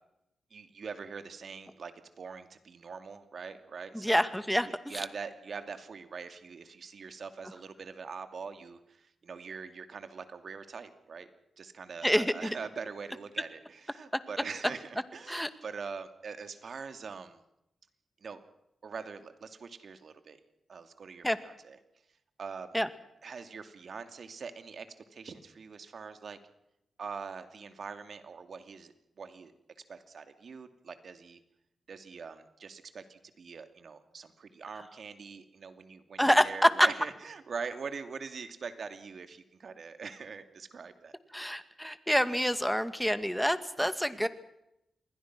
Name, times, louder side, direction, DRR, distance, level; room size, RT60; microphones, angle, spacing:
voice 1, 0.5-4.2 4.7-11.3 11.6-17.4 18.2-18.4 18.8-20.4 20.7-21.8 22.4-22.7 23.2-26.4 27.0-29.5 29.9-31.4 31.9-41.5, right 5 dB, 65° right, 9 dB, 2.5 m, -43 dB
voice 2, 3.9-5.0 12.0-12.5 15.3-15.5 21.2-21.4 22.7-22.9 36.2-36.9 41.3-44.3, equal, ahead, 11 dB, 2.2 m, -27 dB
28.0 x 21.0 x 6.2 m, 0.82 s
cardioid pair, 50°, 0 cm